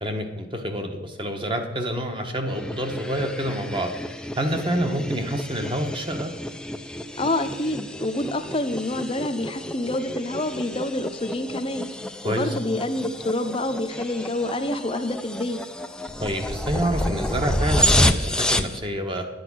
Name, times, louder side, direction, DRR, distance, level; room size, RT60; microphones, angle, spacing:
voice 1, 0.0-3.9 4.4-6.3 12.2-12.5 16.2-19.3, right 1 dB, 25° right, 4 dB, 1.3 m, -27 dB
sound 1, 2.5-18.8, left 1 dB, 5° left, 0.4 m, -29 dB
voice 2, 7.2-11.9 12.2-15.6, left 1 dB, 30° left, 7 dB, 0.7 m, -27 dB
11.0 x 8.0 x 6.2 m, 1.2 s
head